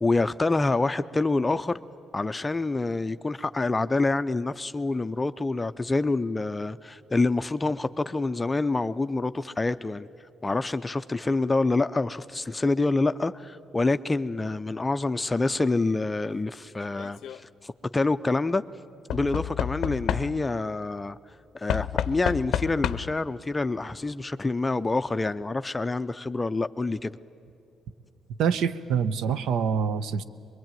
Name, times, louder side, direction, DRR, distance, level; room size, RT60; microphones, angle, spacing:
voice 1, 0.0-1.8 2.1-10.1 10.4-18.6 19.1-21.2 21.5-27.2, left 3 dB, 20° left, 0.5 m, -27 dB
Knock / Wood, 16.9-17.4 19.1-20.6 21.7-23.3 24.3-24.4 24.6-24.7, left 10 dB, 75° left, 0.6 m, -30 dB
voice 2, 28.4-30.2, right 7 dB, 80° right, 0.8 m, -25 dB
22.5 x 22.0 x 9.1 m
cardioid pair, 90°, 0 cm